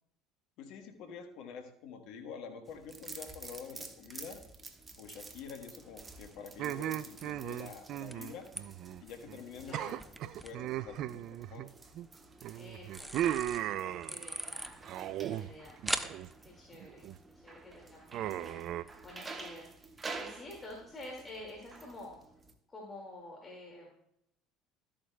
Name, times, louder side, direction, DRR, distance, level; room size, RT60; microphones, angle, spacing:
voice 1, 0.6-4.4 5.0-8.5 9.0-10.0 10.4-11.6, left 6 dB, 65° left, 6 dB, 1.1 m, -47 dB
sound 1, 2.7-22.5, right 3 dB, 25° right, 1.2 m, -50 dB
sound 2, 5.0-19.1, right 1 dB, 5° right, 0.7 m, -46 dB
sound 3, 6.6-9.0 9.3-9.4 9.7-12.1 12.4-14.4 14.8-15.5 15.8-16.3 16.7-17.2 18.1-18.8, right 12 dB, 55° right, 0.3 m, -37 dB
voice 2, 9.6-10.0 12.5-14.7 15.3-15.8 16.4-19.7 20.2-22.2 22.7-23.9, left 1 dB, 25° left, -1 dB, 2.1 m, -49 dB
13.0 x 8.6 x 2.2 m, 0.77 s
hypercardioid pair, 65°, 0 cm